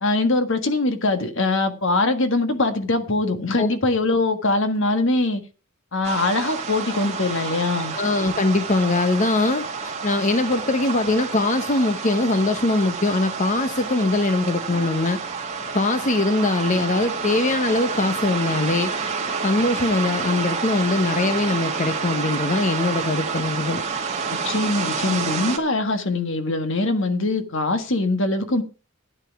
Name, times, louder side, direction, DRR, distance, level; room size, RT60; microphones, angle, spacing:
voice 1, 0.0-5.4 5.9-8.0 24.3-28.6, left 2 dB, 60° left, 1.6 m, -22 dB
sound 1, 6.0-25.6, right 5 dB, 30° right, 2.4 m, -29 dB
voice 2, 7.9-9.7 10.0-15.2 15.7-18.9 19.4-23.8, left 2 dB, 35° left, 0.9 m, -22 dB
12.5 x 9.8 x 4.7 m
head